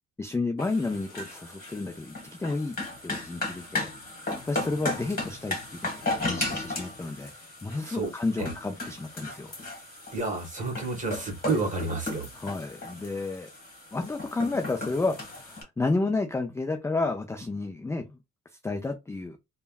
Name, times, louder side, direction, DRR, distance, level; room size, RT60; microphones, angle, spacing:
voice 1, 0.2-2.8 3.0-3.9 4.4-7.3 7.6-9.5 12.4-13.5 13.9-18.2 18.5-19.4, left 3 dB, 10° left, 0.3 m, -31 dB
sound 1, 0.6-15.6, left 2 dB, 30° left, 1.4 m, -36 dB
voice 2, 10.1-12.2, right 3 dB, 25° right, 1.3 m, -30 dB
3.3 x 2.2 x 2.3 m
cardioid pair, 90°, 30 cm